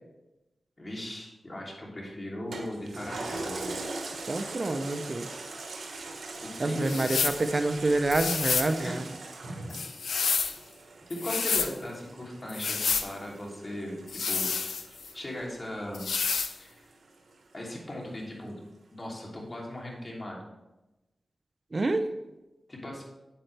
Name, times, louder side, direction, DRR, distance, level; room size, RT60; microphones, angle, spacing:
voice 1, 0.8-3.9 6.6-7.0 8.8-9.0 9.4-9.8 11.1-14.0 14.3-14.7 15.1-16.1 16.6-16.9 17.5-18.6 18.9-20.4 22.7-23.0, left 1 dB, 35° left, -2 dB, 3.0 m, -38 dB
Toilet flush, 2.5-17.3 17.8-17.9, right 3 dB, 80° right, 1.2 m, -42 dB
voice 2, 4.3-5.3 6.6-9.0 21.7-22.1, right 2 dB, 50° right, 9 dB, 0.6 m, -27 dB
sound 1, 6.9-7.4 8.1-8.7 9.7-10.6 11.1-11.7 12.5-13.1 14.1-15.1 15.9-16.5, left 5 dB, 85° left, 0.5 m, -29 dB
8.8 x 8.7 x 3.3 m, 0.99 s
cardioid pair, 50°, 0 cm